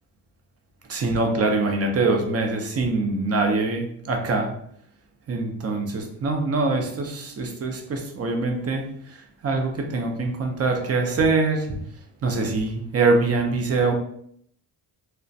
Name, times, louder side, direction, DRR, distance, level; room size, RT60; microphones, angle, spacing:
voice 1, 0.9-4.5 5.3-11.7 12.2-13.9, right 3 dB, 35° right, 3 dB, 0.5 m, -24 dB
2.3 x 2.1 x 2.5 m, 0.68 s
cardioid pair, 95°, 46 cm